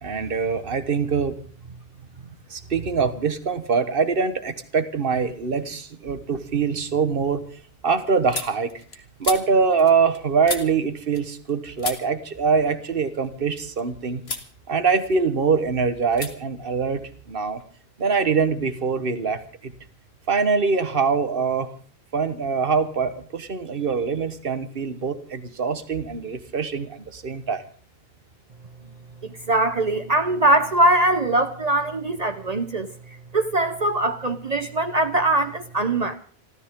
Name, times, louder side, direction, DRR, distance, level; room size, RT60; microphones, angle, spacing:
voice 1, 0.0-1.4 1.6-1.7 2.5-7.4 7.8-8.7 9.2-14.2 14.7-17.6 18.0-19.7 20.3-21.7 22.1-27.6, right 5 dB, 60° right, 11 dB, 1.5 m, -23 dB
sound 1, 5.6-6.1 6.5-11.5 11.8-13.8 14.2-14.5 14.9-15.6 16.1-16.3 16.6-17.6, left 4 dB, 75° left, 2.1 m, -36 dB
voice 2, 29.5-32.9 33.3-36.1, right 2 dB, 40° right, 9 dB, 0.9 m, -21 dB
27.5 x 13.0 x 3.7 m, 0.43 s
omnidirectional pair, 1.1 m